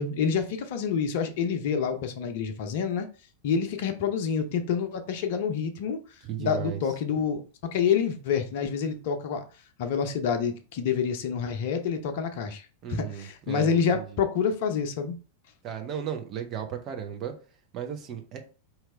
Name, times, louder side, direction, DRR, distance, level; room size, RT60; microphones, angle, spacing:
voice 1, 0.0-3.1 3.4-7.4 7.7-9.4 9.8-15.2, left 6 dB, 50° left, 0.7 m, -28 dB
voice 2, 6.2-6.8 12.8-14.2 15.6-17.3 17.7-18.4, right 9 dB, 35° right, 0.9 m, -35 dB
4.8 x 3.1 x 3.3 m
figure-of-eight pair, 90°, 0 cm